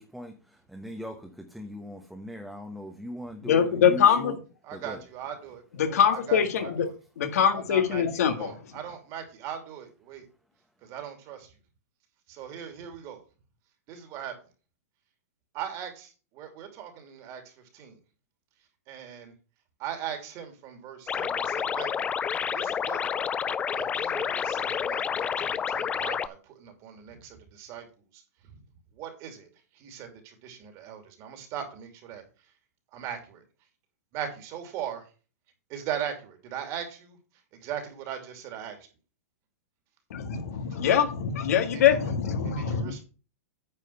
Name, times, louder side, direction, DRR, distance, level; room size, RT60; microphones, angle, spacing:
voice 1, 0.0-4.4 4.7-5.0, equal, ahead, 1.1 m, -40 dB
voice 2, 3.4-4.3 5.8-6.9 7.2-8.5 40.1-42.9, left 8 dB, 70° left, 1.7 m, -23 dB
voice 3, 4.6-5.6 6.1-6.9 7.5-10.3 10.8-11.5 12.3-13.2 13.9-14.3 15.5-18.0 18.9-19.3 19.8-21.9 22.5-23.0 23.7-27.9 28.1-28.2 29.0-29.5 29.7-32.2 32.9-33.4 34.1-35.0 35.7-37.2 37.6-38.8 41.6-42.1 42.4-43.0, right 9 dB, 40° right, 2.7 m, -39 dB
sound 1, 21.1-26.3, left 7 dB, 15° left, 0.3 m, -29 dB
9.4 x 4.9 x 5.7 m
hypercardioid pair, 135°, 9 cm